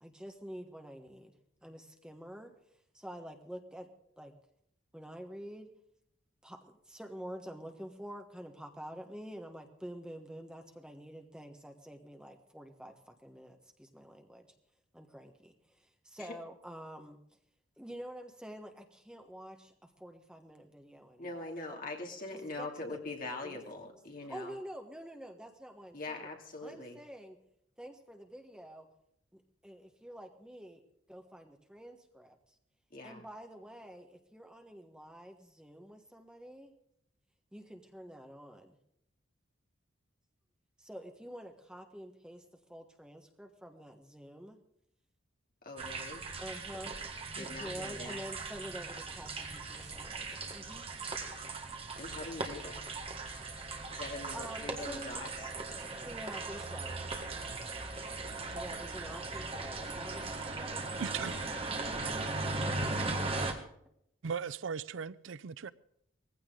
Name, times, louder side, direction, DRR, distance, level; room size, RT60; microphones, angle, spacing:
voice 1, 0.0-1.3 1.6-2.5 2.9-3.9 4.2-4.3 4.9-5.7 6.4-14.5 14.9-17.2 17.8-21.3 21.7-21.8 22.3-23.0 23.4-23.6 24.3-26.3 26.6-27.4 27.8-28.9 29.3-30.8 31.1-32.3 33.0-36.7 37.5-38.8 40.8-42.4 42.7-44.6 46.4-47.0 47.3-50.9 52.2-52.3 54.3-55.2 55.7-57.0 58.5-61.1 61.8-62.1, equal, 5° right, 1.3 m, -48 dB
voice 2, 21.2-24.6 25.9-27.0 32.9-33.3 45.6-46.2 47.4-48.2 51.9-52.9 53.9-55.5 58.4-58.6, left 2 dB, 45° left, 2.7 m, -43 dB
sound 1, 45.8-63.5, right 3 dB, 30° right, 1.7 m, -38 dB
voice 3, 61.0-61.3 64.2-65.7, right 6 dB, 70° right, 0.5 m, -37 dB
19.0 x 15.5 x 3.9 m
head